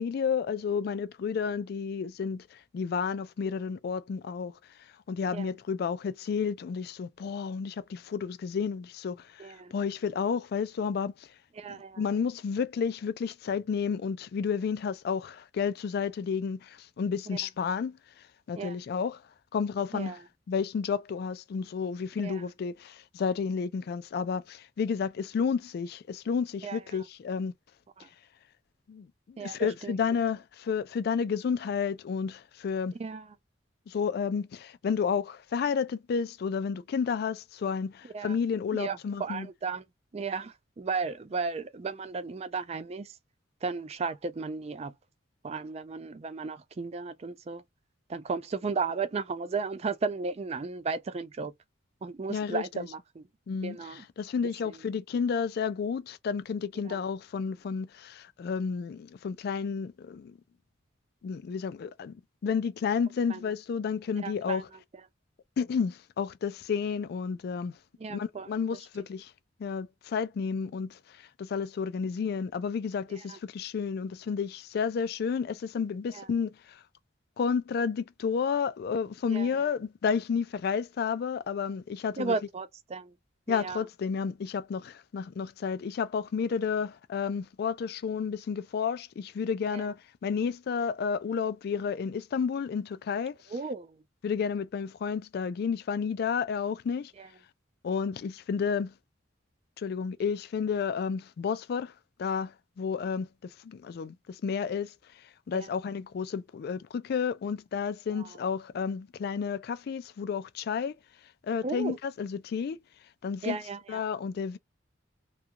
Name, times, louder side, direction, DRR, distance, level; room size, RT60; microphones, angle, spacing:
voice 1, 0.0-4.7 5.1-11.3 11.7-19.2 19.5-20.2 20.5-27.5 28.9-32.9 33.9-39.5 52.3-52.9 53.5-60.4 61.2-64.7 65.6-67.7 68.1-69.3 69.6-76.8 77.4-82.3 83.5-93.5 94.2-97.1 97.8-98.9 99.8-101.9 102.2-111.0 111.4-112.8 113.2-113.6 113.9-114.6, left 6 dB, 55° left, 0.3 m, -31 dB
voice 2, 9.4-9.7 11.6-12.0 17.3-17.4 18.6-18.8 19.9-20.2 22.2-22.5 26.6-27.0 28.0-28.1 29.4-30.0 32.9-33.3 38.1-38.4 38.7-39.8 40.1-43.2 43.6-44.9 45.4-47.6 48.1-51.5 52.0-53.3 53.6-54.0 54.6-54.8 56.9-57.0 63.3-63.4 64.2-64.6 68.0-68.5 73.3-73.4 76.1-76.3 79.3-79.5 82.2-83.1 83.5-83.8 89.7-89.8 93.5-94.0 97.2-97.3 105.5-105.7 108.1-108.4 111.6-112.0 113.4-114.0, right 4 dB, 35° right, 0.4 m, -35 dB
2.4 x 2.3 x 2.7 m
head